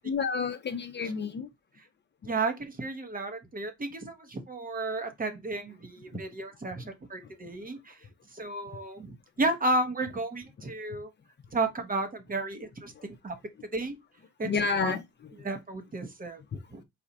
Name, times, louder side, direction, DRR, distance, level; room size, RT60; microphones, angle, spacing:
voice 1, 0.0-1.5 7.4-7.5 13.0-13.1 14.4-15.0, left 5 dB, 35° left, 0.6 m, -30 dB
voice 2, 2.2-8.0 8.3-11.1 11.5-13.4 13.7-14.0 14.4-15.0 15.4-16.4 16.7-16.8, right 2 dB, 30° right, 1.0 m, -33 dB
4.2 x 2.4 x 4.0 m
cardioid pair, 90°, 30 cm